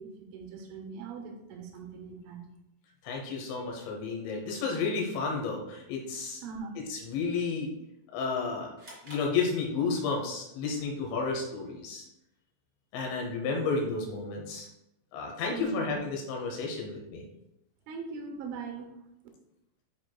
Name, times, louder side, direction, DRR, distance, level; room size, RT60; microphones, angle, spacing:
voice 1, 0.0-2.4 6.4-6.7 15.5-16.0 17.9-18.9, right 5 dB, 80° right, 3 dB, 3.2 m, -40 dB
voice 2, 3.0-6.4 6.9-7.7 8.1-8.7 9.0-12.0 12.9-14.7 15.1-17.2, left 4 dB, 75° left, 1 dB, 3.0 m, -32 dB
sound 1, 8.8-10.2, right 1 dB, 35° right, 1.3 m, -51 dB
11.0 x 4.5 x 2.2 m, 0.86 s
omnidirectional pair, 5.6 m